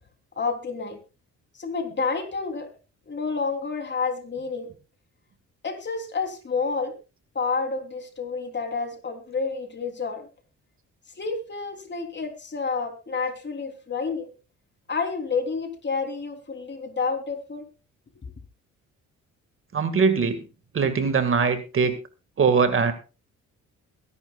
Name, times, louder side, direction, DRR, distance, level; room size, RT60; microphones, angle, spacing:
voice 1, 0.4-1.0 1.6-2.7 3.1-4.7 5.6-6.9 7.3-10.3 11.2-14.3 14.9-17.7, left 4 dB, 35° left, 5 dB, 3.4 m, -29 dB
voice 2, 19.7-20.4 20.7-22.0 22.4-22.9, right 5 dB, 45° right, 9 dB, 2.0 m, -21 dB
22.5 x 11.0 x 2.4 m, 0.31 s
cardioid pair, 90°, 30 cm